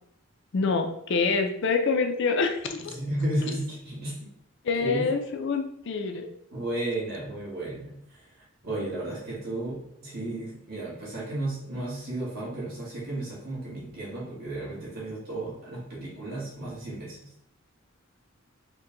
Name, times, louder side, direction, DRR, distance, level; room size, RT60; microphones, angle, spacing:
voice 1, 0.5-2.9 4.6-6.3, left 4 dB, 60° left, 6 dB, 0.5 m, -26 dB
voice 2, 2.8-4.3 4.8-5.1 6.5-17.3, right 1 dB, 50° right, -7 dB, 1.5 m, -34 dB
4.5 x 2.2 x 3.8 m, 0.73 s
head